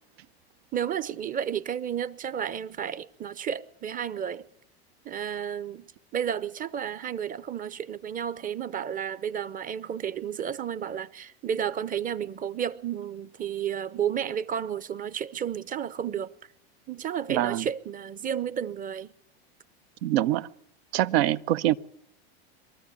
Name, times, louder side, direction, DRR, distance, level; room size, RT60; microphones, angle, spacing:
voice 1, 0.7-4.5 5.0-16.3 16.9-19.1, right 8 dB, 25° right, 0.8 m, -32 dB
voice 2, 17.3-17.6 20.0-20.5 20.9-21.8, right 14 dB, 70° right, 0.8 m, -24 dB
23.0 x 13.5 x 8.4 m
hypercardioid pair, 105°, 32 cm